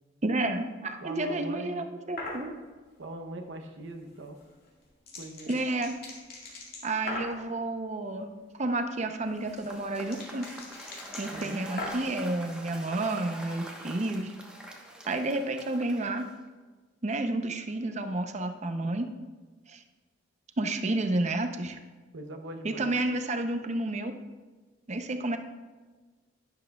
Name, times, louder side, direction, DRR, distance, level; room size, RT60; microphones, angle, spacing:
voice 1, 0.2-2.6 5.5-5.9 6.8-8.3 8.6-10.5 11.2-14.3 15.1-16.3 17.0-19.1 19.7-19.8 20.6-21.8 22.6-24.1 24.9-25.4, right 2 dB, 35° right, 7 dB, 0.7 m, -30 dB
voice 2, 1.0-1.9 3.0-4.4 5.2-5.6 11.3-11.6 22.1-22.9, right 1 dB, 75° right, 4 dB, 0.8 m, -41 dB
sound 1, 2.2-2.4 4.3-7.4 9.0-12.2, left 2 dB, 50° left, 2.2 m, -40 dB
Cheering / Applause / Crowd, 9.4-16.5, right 1 dB, 5° right, 1.0 m, -45 dB
11.0 x 10.0 x 2.3 m, 1.3 s
head